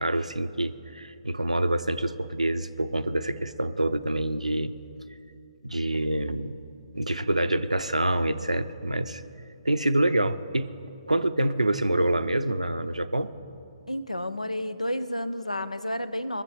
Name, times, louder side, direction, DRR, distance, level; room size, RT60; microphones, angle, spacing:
voice 1, 0.0-4.7 5.6-6.5 6.9-9.2 9.6-10.7 11.1-13.3, right 1 dB, 85° right, 11 dB, 0.6 m, -26 dB
voice 2, 13.9-16.4, left 1 dB, 90° left, 14 dB, 0.6 m, -31 dB
21.5 x 7.5 x 4.8 m, 2.6 s
figure-of-eight pair, 130°, 4 cm